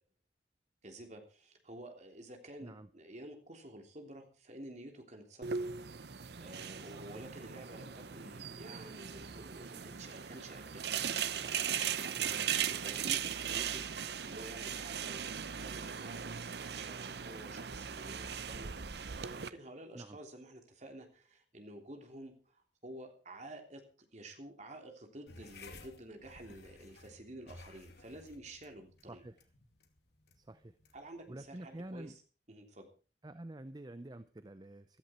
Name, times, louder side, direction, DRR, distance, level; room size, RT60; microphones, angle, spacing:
voice 1, 0.8-5.7 6.0-10.9 11.3-12.2 12.4-16.3 16.7-23.8 24.1-29.2 30.9-32.1 32.5-32.9, right 1 dB, 40° right, 4 dB, 3.3 m, -51 dB
sound 1, 5.4-19.5, right 8 dB, 70° right, 0.8 m, -38 dB
voice 2, 6.8-7.2 12.2-12.5 19.9-20.2 29.1-29.4 30.4-30.7 31.3-32.2 33.2-35.0, right 1 dB, 25° right, 12 dB, 0.7 m, -48 dB
sound 2, 25.3-32.1, left 2 dB, 70° left, 2.5 m, -57 dB
16.0 x 13.5 x 4.4 m, 0.37 s
head